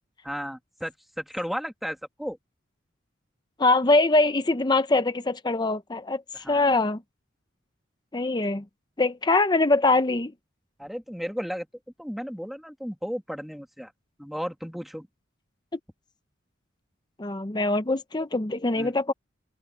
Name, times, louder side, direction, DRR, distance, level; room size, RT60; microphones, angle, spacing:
voice 1, 0.2-2.4 6.3-6.7 10.8-11.7 12.0-13.9 14.2-15.1 18.8-18.9, equal, ahead, 2.0 m, -34 dB
voice 2, 3.6-7.0 8.1-8.6 9.0-10.3 17.2-19.1, left 2 dB, 20° left, 0.7 m, -23 dB
open air
head